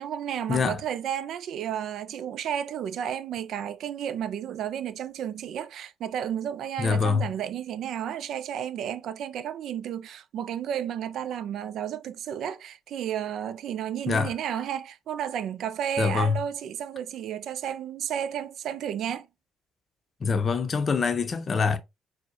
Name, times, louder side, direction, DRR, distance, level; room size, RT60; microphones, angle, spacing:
voice 1, 0.0-19.3, right 9 dB, 65° right, 0.3 m, -32 dB
voice 2, 6.8-7.3 14.1-14.3 16.0-16.4 20.2-21.8, left 5 dB, 45° left, 0.6 m, -24 dB
4.4 x 2.1 x 2.6 m
hypercardioid pair, 55°, 0 cm